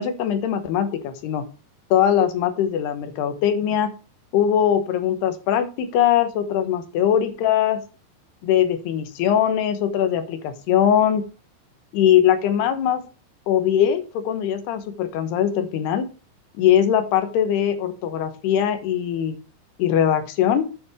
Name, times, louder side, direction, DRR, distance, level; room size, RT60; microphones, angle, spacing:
voice 1, 0.0-1.4 1.9-3.9 4.3-7.8 8.4-11.3 11.9-13.0 13.5-16.1 16.5-19.4 19.8-20.6, left 9 dB, 75° left, 9 dB, 2.9 m, -21 dB
9.7 x 5.2 x 5.0 m, 0.33 s
omnidirectional pair, 5.2 m